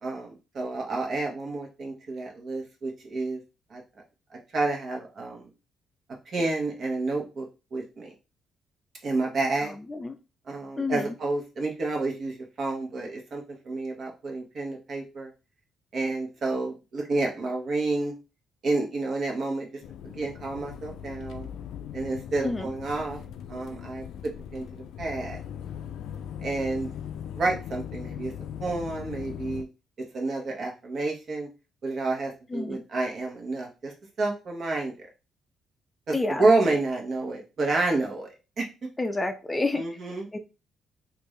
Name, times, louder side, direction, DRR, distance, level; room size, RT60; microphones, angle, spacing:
voice 1, 0.0-3.4 3.7-3.8 4.3-5.4 6.3-7.5 7.7-8.1 9.0-9.7 10.5-15.3 15.9-18.1 18.6-21.5 21.9-23.2 23.5-24.0 24.5-24.6 25.0-25.4 26.4-26.9 27.3-28.3 28.6-29.7 30.1-31.5 31.8-34.9 36.1-38.3 38.6-38.7 39.7-40.4, right 3 dB, 55° right, 1 dB, 1.2 m, -29 dB
voice 2, 10.8-11.1 22.4-22.7 32.5-32.8 36.1-36.5 39.0-39.9 40.3-40.4, left 2 dB, 20° left, 7 dB, 0.4 m, -28 dB
sound 1, 19.8-29.6, left 9 dB, 80° left, 0.4 m, -39 dB
3.4 x 2.6 x 3.2 m, 0.30 s
cardioid pair, 90°, 0 cm